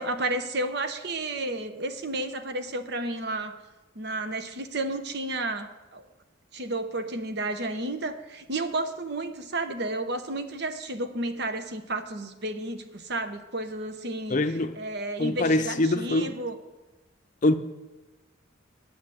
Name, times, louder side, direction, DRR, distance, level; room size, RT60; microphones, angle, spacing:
voice 1, 0.0-3.6 3.9-6.0 6.5-14.4 14.7-16.6, right 2 dB, 55° right, 1.0 m, -32 dB
voice 2, 14.3-14.7 15.2-16.3 17.4-17.5, left 2 dB, 40° left, 0.6 m, -23 dB
9.9 x 6.3 x 8.5 m
head